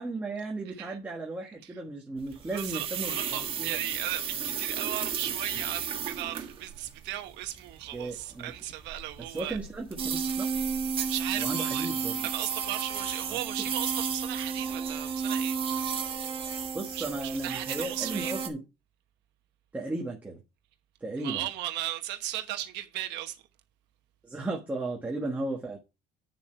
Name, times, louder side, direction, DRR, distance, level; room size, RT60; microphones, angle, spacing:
voice 1, 0.0-4.0 7.9-8.5 9.2-10.5 11.4-12.3 13.3-13.4 16.7-18.6 19.7-20.4 21.0-21.5 24.2-25.8, right 2 dB, 10° right, 1.4 m, -35 dB
sound 1, 2.2-18.5, right 6 dB, 30° right, 1.4 m, -33 dB
voice 2, 2.4-9.6 11.0-11.9 12.2-15.6 16.9-18.4 21.2-23.4, right 14 dB, 70° right, 1.1 m, -36 dB
8.9 x 7.0 x 4.5 m
cardioid pair, 170°, 18 cm